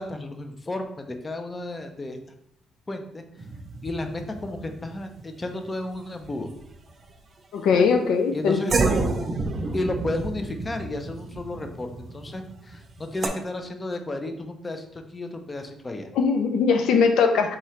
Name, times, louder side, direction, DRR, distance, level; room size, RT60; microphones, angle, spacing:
voice 1, 0.0-2.2 2.9-3.2 3.8-6.6 7.7-7.8 8.3-8.7 9.7-16.1, left 2 dB, 25° left, 6 dB, 0.6 m, -33 dB
sound 1, 3.4-6.3 6.5-7.1 7.8-7.9 8.7-13.3, right 3 dB, 40° right, 0.6 m, -29 dB
voice 2, 7.5-8.6 16.2-17.5, left 5 dB, 80° left, 5 dB, 0.5 m, -20 dB
3.7 x 3.1 x 4.3 m, 0.73 s
cardioid pair, 90°, 0 cm